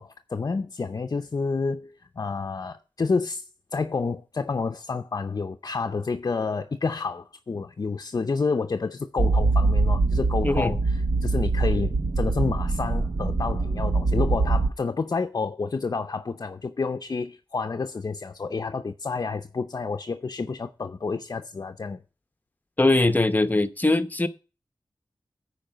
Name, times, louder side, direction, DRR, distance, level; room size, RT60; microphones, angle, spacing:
voice 1, 0.0-3.4 3.7-22.0, left 4 dB, 50° left, 0.6 m, -29 dB
sound 1, 9.2-14.7, right 3 dB, 65° right, 0.8 m, -23 dB
voice 2, 10.4-10.7 22.8-24.3, left 2 dB, 20° left, 0.8 m, -21 dB
10.5 x 4.7 x 7.8 m
wide cardioid pair, 100°, 8 cm